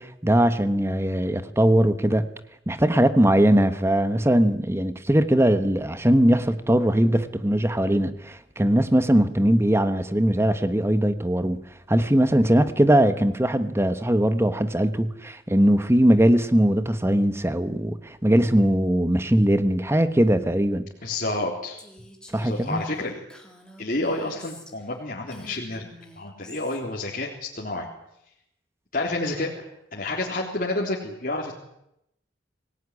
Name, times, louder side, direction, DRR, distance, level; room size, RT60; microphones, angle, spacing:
voice 1, 0.0-2.3 2.7-11.6 11.9-20.9 22.3-22.8, right 1 dB, 15° right, 1.2 m, -20 dB
voice 2, 21.0-21.8 22.4-23.2 23.8-27.9 28.9-29.7 29.9-31.5, left 2 dB, 50° left, 3.6 m, -29 dB
Female speech woman speaking, 21.8-25.0 25.3-26.8, left 1 dB, 5° left, 3.8 m, -48 dB
25.0 x 18.0 x 9.8 m
head